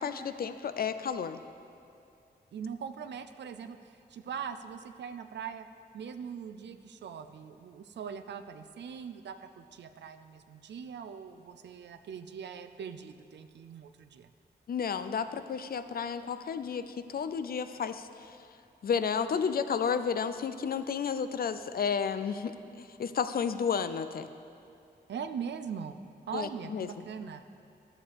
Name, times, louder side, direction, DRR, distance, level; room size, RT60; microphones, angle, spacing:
voice 1, 0.0-1.4 14.7-18.1 18.8-24.3 26.3-27.0, left 6 dB, 60° left, 11 dB, 0.4 m, -32 dB
voice 2, 2.5-5.7 5.9-14.3 25.1-26.0 26.3-27.4, right 7 dB, 90° right, 9 dB, 0.4 m, -41 dB
12.5 x 7.2 x 3.4 m, 2.5 s
wide cardioid pair, 80°, 18 cm